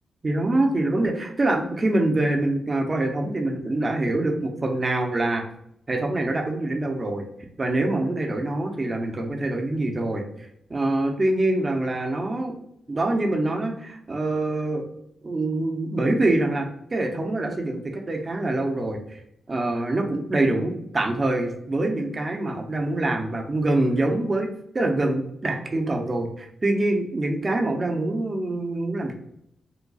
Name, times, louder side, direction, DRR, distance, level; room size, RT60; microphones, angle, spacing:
voice 1, 0.2-5.4 5.9-7.3 7.6-10.3 10.7-12.5 12.9-14.9 15.2-19.2 19.5-24.5 24.7-29.1, right 2 dB, 40° right, 3 dB, 0.7 m, -25 dB
4.0 x 2.2 x 2.3 m, 0.74 s
supercardioid pair, 50°, 0 cm